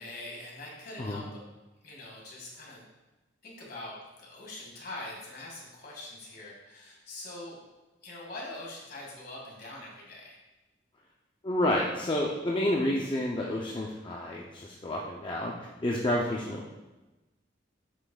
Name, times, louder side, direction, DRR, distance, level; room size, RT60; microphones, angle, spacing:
voice 1, 0.0-1.4 1.8-2.9 3.4-7.6 8.0-10.3, left 2 dB, 55° left, -3 dB, 1.9 m, -43 dB
voice 2, 11.4-15.5 15.8-16.7, left 1 dB, 25° left, -2 dB, 0.5 m, -29 dB
8.1 x 5.7 x 2.3 m, 1.1 s
head